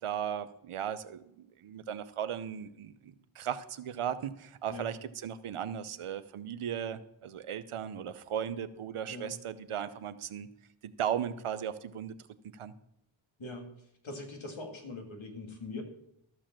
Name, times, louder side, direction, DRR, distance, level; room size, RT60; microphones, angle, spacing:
voice 1, 0.0-10.5 10.8-12.2 12.5-12.7, right 9 dB, 90° right, 13 dB, 0.7 m, -37 dB
voice 2, 13.4-13.7 14.0-15.8, left 2 dB, 70° left, 3 dB, 2.1 m, -42 dB
13.5 x 4.9 x 7.3 m, 0.77 s
cardioid pair, 50°, 49 cm